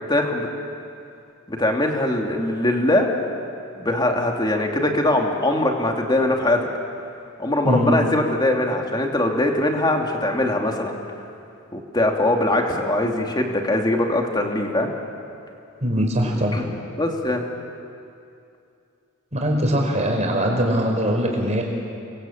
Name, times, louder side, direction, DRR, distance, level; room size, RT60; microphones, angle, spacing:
voice 1, 0.1-0.5 1.5-3.1 3.8-6.7 7.4-11.0 11.7-14.9 16.5-16.6 17.0-17.4, left 1 dB, 20° left, 2 dB, 2.7 m, -21 dB
voice 2, 15.8-16.6 19.3-21.6, equal, 30° right, 1 dB, 5.2 m, -21 dB
29.5 x 23.0 x 8.8 m, 2.5 s
head